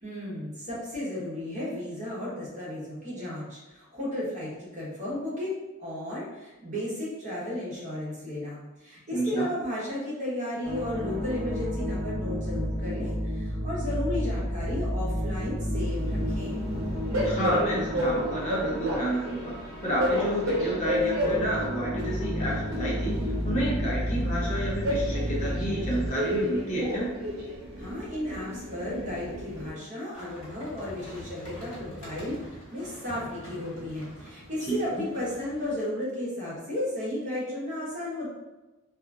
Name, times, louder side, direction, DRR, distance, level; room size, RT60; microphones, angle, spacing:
voice 1, 0.0-16.6 27.8-38.3, left 1 dB, 35° right, -7 dB, 0.9 m, -34 dB
voice 2, 9.1-9.5 17.2-27.1 34.7-35.0, right 1 dB, 35° left, -5 dB, 0.6 m, -30 dB
sound 1, 10.6-26.1, equal, ahead, 1.0 m, -31 dB
Train, 15.7-29.7, equal, 70° right, 0.7 m, -32 dB
sound 2, 30.1-35.7, equal, 75° left, 1.0 m, -45 dB
2.8 x 2.4 x 2.4 m, 1.1 s
head